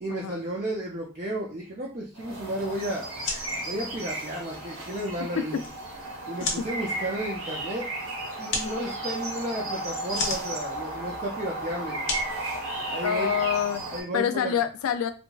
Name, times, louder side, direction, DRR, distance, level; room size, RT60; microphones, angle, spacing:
voice 1, 0.0-3.1 3.7-5.6 6.3-7.9 8.4-12.0 12.9-13.4 13.9-14.5, right 1 dB, 35° right, -4 dB, 0.4 m, -33 dB
sound 1, 2.2-14.0, right 2 dB, 75° right, 0.8 m, -34 dB
sound 2, 3.2-13.3, left 3 dB, 55° left, 0.7 m, -37 dB
voice 2, 13.0-13.9 14.1-15.1, left 8 dB, 85° left, 10 dB, 0.3 m, -27 dB
2.8 x 2.5 x 2.3 m, 0.34 s
head